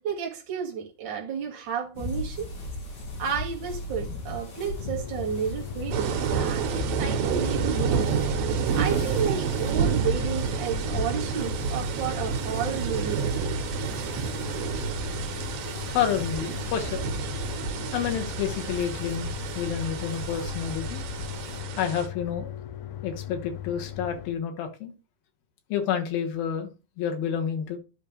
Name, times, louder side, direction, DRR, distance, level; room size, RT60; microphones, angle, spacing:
voice 1, 0.0-2.5 3.2-8.1 8.7-13.4 14.2-14.5, right 7 dB, 40° right, 2.0 m, -32 dB
sound 1, 1.9-21.6, left 1 dB, 50° left, 4.0 m, -37 dB
sound 2, 4.8-24.3, left 11 dB, 70° left, 1.8 m, -39 dB
sound 3, 5.9-22.1, right 7 dB, 85° right, 2.8 m, -30 dB
voice 2, 15.9-17.0 17.9-21.0 21.8-22.5 23.0-24.9 25.7-27.8, left 8 dB, 90° left, 3.1 m, -29 dB
12.0 x 4.8 x 3.3 m
omnidirectional pair, 4.2 m